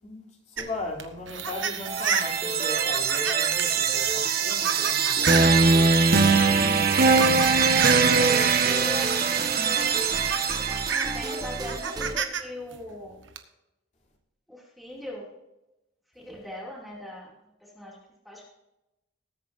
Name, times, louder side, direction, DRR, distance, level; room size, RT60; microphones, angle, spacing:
voice 1, 0.0-5.7 6.9-7.5, left 2 dB, 40° left, -3 dB, 3.3 m, -38 dB
sound 1, 0.6-6.1 6.8-8.1 9.3-9.4 9.8-12.4 12.7-13.4, right 7 dB, 80° right, 1.3 m, -31 dB
sound 2, 1.5-5.9 6.3-12.2, right 2 dB, 20° right, 0.7 m, -37 dB
sound 3, 1.8-11.8, right 4 dB, 55° right, 1.3 m, -22 dB
voice 2, 7.7-8.0 8.6-9.3 9.6-10.2 10.6-13.2 14.5-15.3 16.1-17.3 17.6-18.0 18.2-18.4, left 1 dB, ahead, -3 dB, 2.7 m, -40 dB
20.0 x 9.1 x 2.7 m, 0.96 s
head